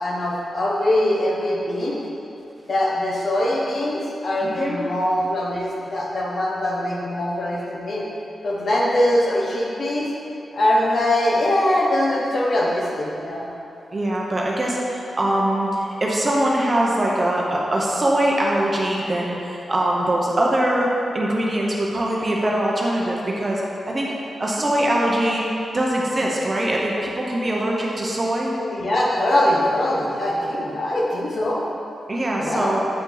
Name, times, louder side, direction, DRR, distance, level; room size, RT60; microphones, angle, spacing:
voice 1, 0.0-2.0 2.6-8.1 8.4-10.1 10.5-13.5 28.7-31.6 32.4-32.8, left 1 dB, 45° left, -4 dB, 1.1 m, -22 dB
voice 2, 4.4-4.8 13.9-24.1 24.4-25.4 25.7-28.5 32.1-32.8, right 1 dB, 25° right, -3 dB, 0.8 m, -22 dB
8.2 x 5.6 x 3.9 m, 2.9 s
wide cardioid pair, 175°, 0 cm